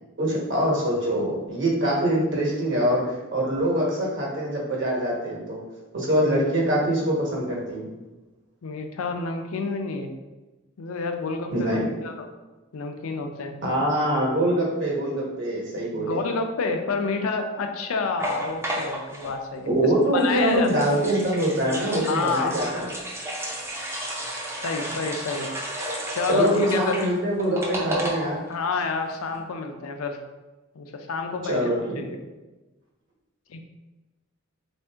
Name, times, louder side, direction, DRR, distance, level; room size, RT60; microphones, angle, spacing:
voice 1, 0.2-5.6 5.9-7.9 11.5-11.9 13.6-16.2 19.7-22.9 26.3-28.4 31.4-32.0, right 1 dB, 60° right, -4 dB, 1.1 m, -24 dB
voice 2, 8.6-10.1 10.8-12.3 12.7-13.5 15.9-20.9 22.1-22.7 24.6-25.5 26.1-27.0 28.5-30.2 30.8-32.2 33.5-33.6, left 4 dB, 85° left, 5 dB, 0.5 m, -29 dB
sound 1, 18.2-19.4 20.2-28.5 28.8-28.9 29.1-29.4, right 1 dB, 10° right, 0.4 m, -32 dB
3.6 x 2.6 x 3.4 m, 1.1 s
head